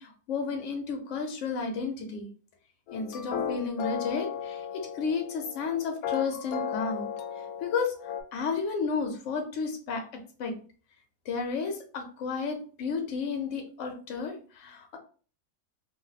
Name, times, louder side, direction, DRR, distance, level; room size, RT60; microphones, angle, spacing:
voice 1, 0.0-2.3 2.9-7.1 7.4-10.5 11.3-15.0, left 5 dB, 65° left, 4 dB, 1.0 m, -32 dB
sound 1, 2.9-8.2, left 8 dB, 85° left, 1.1 m, -35 dB
2.7 x 2.1 x 3.9 m, 0.40 s
omnidirectional pair, 1.5 m